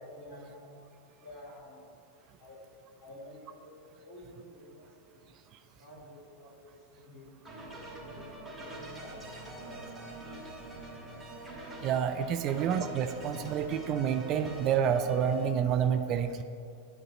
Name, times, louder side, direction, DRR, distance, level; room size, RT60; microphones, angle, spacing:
voice 1, 0.1-0.9 1.2-1.9 2.4-2.6 3.0-5.2 5.7-10.5 12.4-12.7, left 1 dB, 55° left, -4 dB, 1.7 m, -51 dB
sound 1, 7.5-15.5, right 1 dB, 10° right, 2.1 m, -44 dB
voice 2, 11.8-16.4, right 8 dB, 35° right, 7 dB, 0.4 m, -28 dB
10.5 x 3.9 x 6.3 m, 2.3 s
figure-of-eight pair, 90°, 0 cm